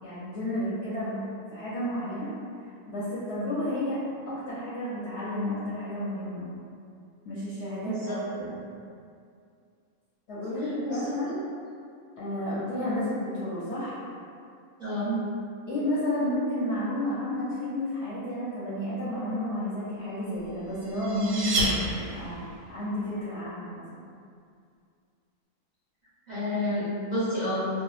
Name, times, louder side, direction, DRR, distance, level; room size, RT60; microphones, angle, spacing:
voice 1, 0.0-1.2 1.5-2.3 2.9-4.0 4.3-6.5 7.2-8.6 10.3-11.5 12.2-14.0 15.7-22.4 22.7-24.0, left 1 dB, 65° left, -9 dB, 0.7 m, -31 dB
voice 2, 7.8-8.2 10.9-11.0 14.8-15.3 26.3-27.7, equal, 40° right, -15 dB, 0.8 m, -29 dB
sound 1, 20.5-22.5, right 2 dB, 80° right, 1.0 m, -30 dB
2.7 x 2.1 x 2.3 m, 2.4 s
omnidirectional pair, 1.4 m